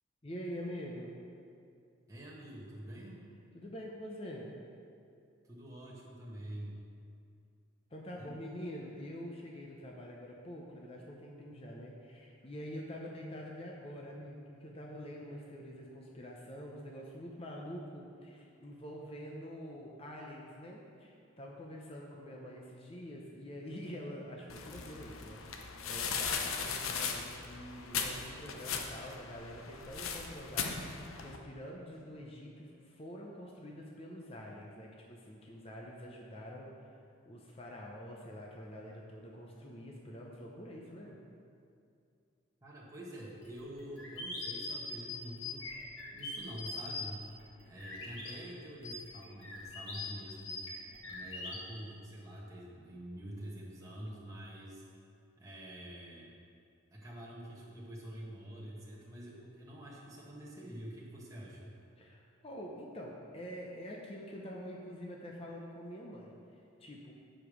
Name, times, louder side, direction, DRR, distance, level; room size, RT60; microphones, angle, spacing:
voice 1, 0.2-1.2 3.5-4.5 7.9-36.7 37.2-41.2 62.0-66.4 66.8-67.1, equal, 30° left, -1 dB, 0.7 m, -46 dB
voice 2, 2.1-3.2 5.4-6.8 8.2-8.3 42.6-45.7 46.1-47.2 47.6-50.6 51.1-54.8 55.4-56.3 56.9-61.7, right 1 dB, 15° right, -5 dB, 1.2 m, -47 dB
sound 1, 24.5-31.4, left 6 dB, 85° left, 0.8 m, -38 dB
sound 2, 43.4-48.3 48.8-51.6, left 3 dB, 65° left, 2.0 m, -42 dB
9.1 x 5.1 x 6.2 m, 2.4 s
head